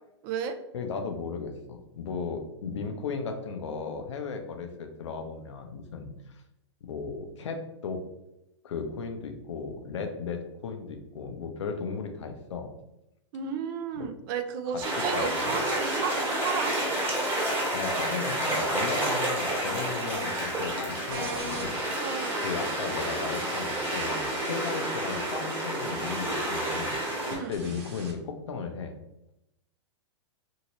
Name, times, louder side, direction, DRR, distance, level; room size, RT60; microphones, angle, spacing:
voice 1, 0.2-0.6 13.3-16.7 19.3-19.4 22.0-22.4 27.3-27.5, right 7 dB, 45° right, 7 dB, 0.4 m, -33 dB
voice 2, 0.7-6.4 6.8-8.0 8.6-12.7 13.9-14.1 14.7-14.8 15.1-15.7 17.7-22.1 22.4-27.0 27.3-28.9, left 5 dB, 75° left, 5 dB, 0.6 m, -36 dB
sound 1, 14.8-27.4, right 1 dB, 15° right, 1.2 m, -30 dB
sound 2, 20.1-20.3 21.1-21.7 22.8-28.1, right 2 dB, 65° right, 1.0 m, -44 dB
2.9 x 2.7 x 2.9 m, 0.88 s
hypercardioid pair, 125°, 15 cm